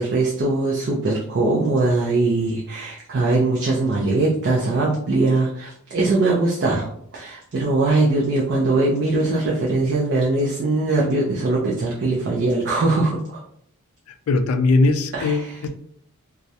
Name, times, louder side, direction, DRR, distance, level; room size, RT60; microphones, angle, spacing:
voice 1, 0.0-6.9 7.1-13.2 15.1-15.5, right 2 dB, 50° right, -3 dB, 0.4 m, -21 dB
voice 2, 14.3-15.7, left 3 dB, 70° left, 9 dB, 0.3 m, -19 dB
2.3 x 2.0 x 2.7 m, 0.68 s
head